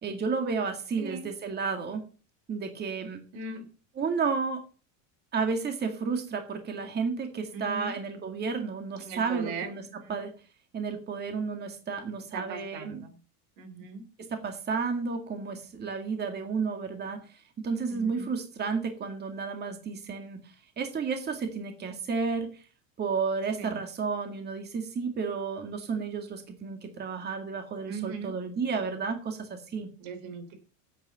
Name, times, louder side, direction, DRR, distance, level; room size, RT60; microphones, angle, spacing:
voice 1, 0.0-2.0 2.5-3.2 4.0-4.6 5.3-9.8 10.1-10.3 10.7-13.0 14.2-22.6 23.0-29.9, right 5 dB, 25° right, 6 dB, 2.0 m, -32 dB
voice 2, 1.0-1.3 3.3-3.6 7.5-8.0 9.0-9.7 10.0-10.2 12.3-13.2 13.6-14.0 17.9-18.3 23.6-23.8 27.9-28.3 30.0-30.6, right 4 dB, 80° right, 9 dB, 3.7 m, -39 dB
9.3 x 8.3 x 7.0 m, 0.37 s
supercardioid pair, 145°, 42 cm